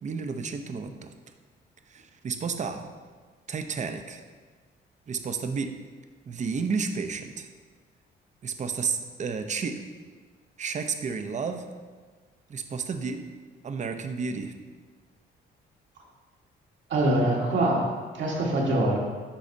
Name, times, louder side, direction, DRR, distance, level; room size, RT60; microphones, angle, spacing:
voice 1, 0.0-1.1 1.9-2.9 3.5-4.2 5.1-5.8 6.3-7.5 8.4-9.8 10.6-11.7 12.5-13.2 13.6-14.5, right 5 dB, 35° right, 7 dB, 0.6 m, -31 dB
voice 2, 16.9-19.0, right 1 dB, 70° right, -2 dB, 1.4 m, -24 dB
10.0 x 4.2 x 2.7 m, 1.5 s
cardioid pair, 90°, 20 cm